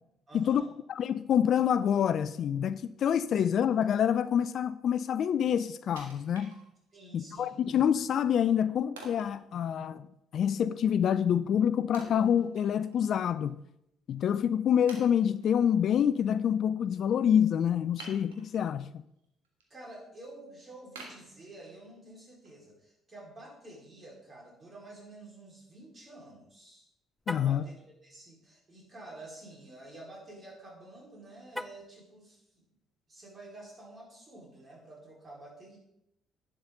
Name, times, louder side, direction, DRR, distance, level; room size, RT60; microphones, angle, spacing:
voice 1, 0.3-0.7 3.3-3.5 6.9-7.6 19.7-26.9 27.3-32.6 33.1-35.8, right 2 dB, 35° right, -2 dB, 4.6 m, -50 dB
voice 2, 0.9-6.5 7.1-10.0 10.3-13.6 14.1-18.9 27.3-27.6, left 8 dB, 55° left, 15 dB, 0.4 m, -27 dB
Wood, 6.0-7.1 7.5-7.6 9.0-9.4 11.9-13.1 13.4-13.5 14.2-14.3 14.9-15.6 17.9-18.7 19.2-19.6 20.1-20.2 21.0-22.0 22.4-22.5, right 3 dB, 80° right, 1.6 m, -49 dB
Car, 27.2-27.6 31.5-32.0, left 1 dB, 5° left, 0.5 m, -39 dB
11.0 x 8.0 x 3.9 m, 0.80 s
hypercardioid pair, 50°, 0 cm